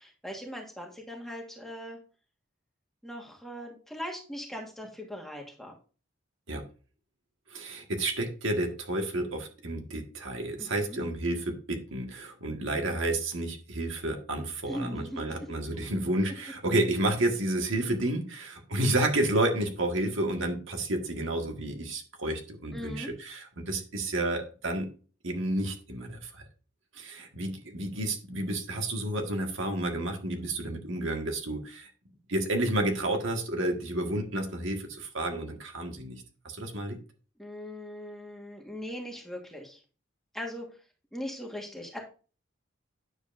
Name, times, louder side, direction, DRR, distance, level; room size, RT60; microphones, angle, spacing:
voice 1, 0.0-2.0 3.0-5.7 10.6-11.0 14.7-15.2 22.7-23.1 37.4-39.8 40.3-40.8 41.1-42.0, equal, ahead, 0 dB, 1.4 m, -40 dB
voice 2, 7.5-24.9 25.2-26.4 26.9-31.9 32.3-37.0, right 1 dB, 70° right, 3 dB, 1.5 m, -30 dB
9.6 x 7.1 x 2.5 m, 0.37 s
head